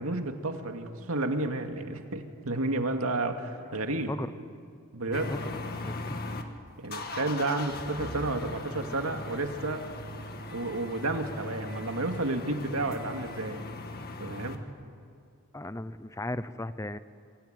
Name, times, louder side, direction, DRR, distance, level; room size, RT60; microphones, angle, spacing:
voice 1, 0.0-4.1 4.9-5.3 6.8-9.8 10.5-13.6 14.2-14.6, right 2 dB, 85° right, 5 dB, 2.3 m, -31 dB
sound 1, 5.1-6.4 6.8-14.6, left 2 dB, 45° left, 1.9 m, -39 dB
voice 2, 5.1-6.2 15.5-17.0, left 1 dB, 15° left, 13 dB, 0.7 m, -37 dB
26.0 x 24.5 x 9.2 m, 2.3 s
head